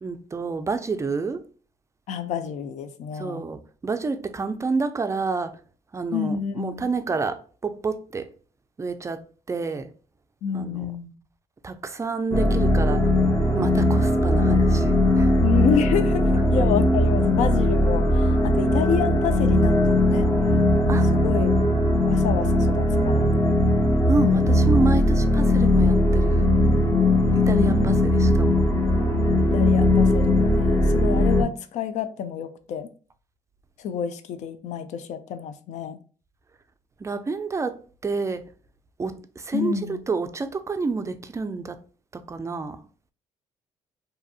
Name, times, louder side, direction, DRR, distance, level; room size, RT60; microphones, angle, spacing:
voice 1, 0.0-1.4 3.1-5.6 5.9-8.3 8.8-9.9 10.5-11.0 11.6-13.1 13.5-15.3 16.3-16.6 20.9-21.1 24.1-26.5 27.3-28.6 37.0-37.8 38.0-38.5 39.0-41.8 42.1-42.8, right 4 dB, 25° right, 0.3 m, -29 dB
voice 2, 2.1-3.5 6.1-6.9 10.4-11.1 15.4-20.3 21.2-21.5 22.1-23.3 27.5-28.1 29.5-32.9 33.8-36.0 39.5-40.0, left 7 dB, 70° left, 0.4 m, -28 dB
sound 1, 12.3-31.4, left 1 dB, 25° left, 0.6 m, -19 dB
2.7 x 2.5 x 2.3 m
supercardioid pair, 70°, 13 cm